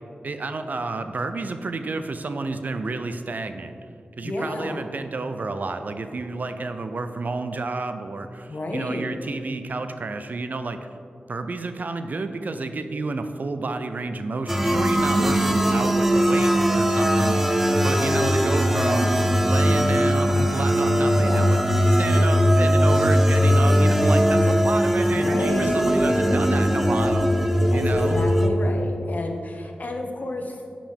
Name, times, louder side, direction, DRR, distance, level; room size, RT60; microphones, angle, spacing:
voice 1, 0.2-3.7 4.2-10.8 11.3-21.6 21.9-27.3 27.7-28.2, right 3 dB, 55° right, 8 dB, 0.5 m, -30 dB
voice 2, 4.2-4.8 8.5-9.1 21.2-21.5 25.1-25.9 27.7-30.6, left 2 dB, 55° left, 3 dB, 1.0 m, -31 dB
sound 1, 14.5-28.5, equal, 5° right, 0.7 m, -20 dB
10.0 x 5.0 x 3.5 m, 2.5 s
cardioid pair, 55°, 3 cm